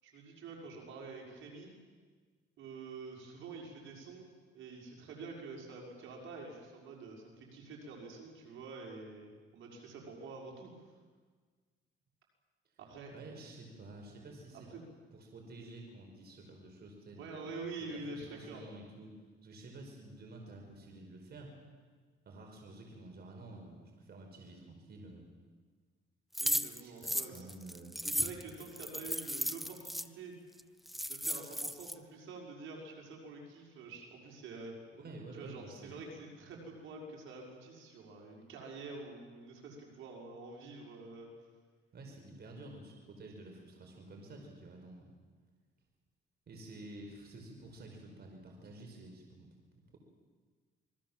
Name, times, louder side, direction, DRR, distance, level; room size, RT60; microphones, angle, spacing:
voice 1, 0.0-1.7 2.6-4.3 4.5-10.7 12.8-13.1 14.7-14.9 17.2-18.6 26.4-27.5 28.0-30.3 31.1-34.7 35.4-41.3, right 3 dB, 80° right, 0 dB, 6.2 m, -47 dB
voice 2, 13.1-14.7 15.1-17.4 17.9-19.2 19.4-21.6 22.3-25.2 26.8-28.0 34.9-36.0 41.9-45.1 46.5-49.5, right 2 dB, 55° right, 2 dB, 5.4 m, -50 dB
sound 1, 26.3-30.1 30.6-30.7 30.9-31.9, equal, ahead, 0.9 m, -35 dB
28.0 x 21.5 x 7.6 m, 1.5 s
cardioid pair, 90°, 20 cm